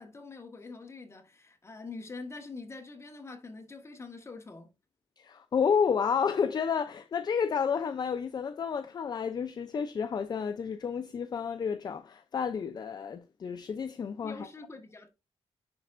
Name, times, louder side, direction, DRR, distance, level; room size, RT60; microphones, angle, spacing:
voice 1, 0.0-4.7 14.2-15.1, left 3 dB, 25° left, 1.4 m, -45 dB
voice 2, 5.2-14.5, left 6 dB, 45° left, 0.4 m, -30 dB
10.0 x 4.1 x 2.5 m
wide cardioid pair, 140°, 10 cm